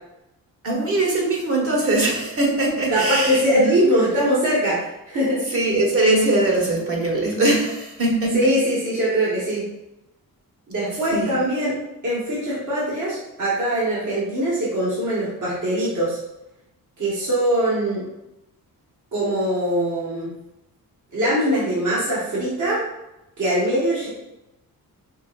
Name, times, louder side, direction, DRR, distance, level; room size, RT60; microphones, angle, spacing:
voice 1, 0.6-3.8 5.5-8.6 11.1-11.4, right 2 dB, 40° right, -2 dB, 1.3 m, -21 dB
voice 2, 2.9-5.4 8.3-9.6 10.7-11.7 12.0-16.2 17.0-18.1 19.1-20.3 21.1-22.8 23.4-24.1, right 1 dB, 55° right, -7 dB, 1.7 m, -22 dB
5.4 x 3.7 x 2.6 m, 0.92 s
wide cardioid pair, 135°, 37 cm